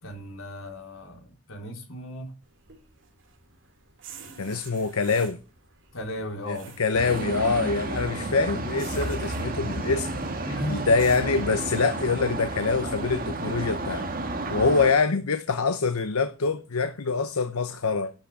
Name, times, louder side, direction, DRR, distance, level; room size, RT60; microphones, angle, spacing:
voice 1, 0.0-2.3 5.9-7.3 8.0-8.4 10.4-10.9, equal, 65° left, 3.7 m, -36 dB
sound 1, 2.4-11.6, right 5 dB, 55° right, 2.9 m, -49 dB
voice 2, 4.4-5.4 6.5-10.1 10.7-14.1 14.5-18.1, left 4 dB, 85° left, 0.9 m, -25 dB
sound 2, 6.9-14.9, right 2 dB, 40° right, 1.6 m, -31 dB
12.0 x 6.1 x 8.6 m
head